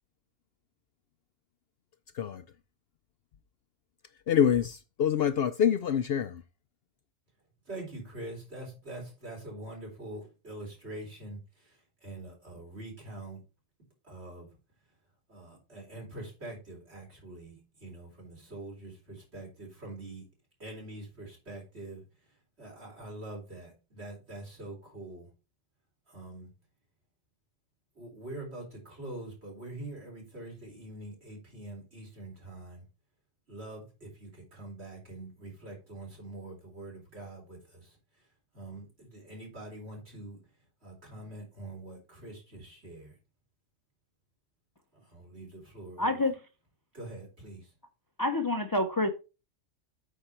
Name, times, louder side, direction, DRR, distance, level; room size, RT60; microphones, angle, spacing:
voice 1, 4.3-6.4, left 8 dB, 65° left, 0.7 m, -26 dB
voice 2, 7.7-13.4 14.0-14.5 15.3-20.3 20.6-25.3 26.1-26.5 27.9-32.8 33.5-38.3 38.5-40.4 40.8-43.2 44.9-46.1 46.9-47.7, right 2 dB, 55° right, 4.2 m, -44 dB
voice 3, 46.0-46.4 48.2-49.1, left 2 dB, 25° left, 0.5 m, -27 dB
8.5 x 5.6 x 4.4 m
omnidirectional pair, 1.3 m